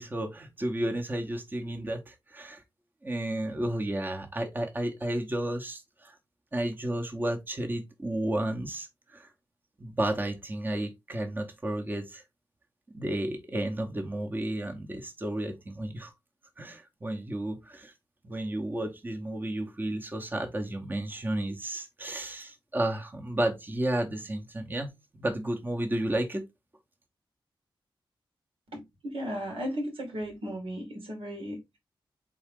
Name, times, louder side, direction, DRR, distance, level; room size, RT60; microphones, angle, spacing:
voice 1, 0.0-2.6 3.0-6.2 6.5-9.3 9.8-12.2 12.9-16.1 16.6-17.9 18.2-24.9 25.1-26.4, right 1 dB, 20° right, 1.0 m, -32 dB
voice 2, 28.7-31.8, equal, 85° right, 2.2 m, -36 dB
4.0 x 3.6 x 3.6 m
wide cardioid pair, 115°, 9 cm